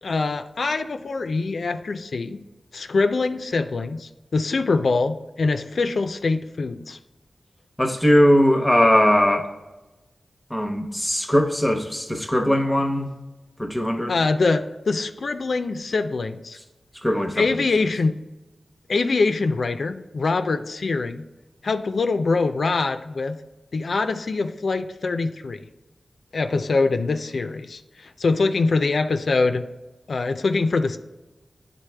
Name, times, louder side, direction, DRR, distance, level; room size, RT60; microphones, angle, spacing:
voice 1, 0.0-2.4 2.7-7.0 14.1-16.6 17.4-18.2 18.9-21.2 21.6-23.4 23.7-25.6 26.3-29.7 30.1-31.0, left 3 dB, 70° left, 8 dB, 0.4 m, -24 dB
voice 2, 7.8-9.5 10.5-13.1 13.6-14.2 17.0-17.4, equal, 10° left, 4 dB, 0.8 m, -19 dB
9.0 x 3.9 x 3.3 m, 1.1 s
cardioid pair, 60°, 0 cm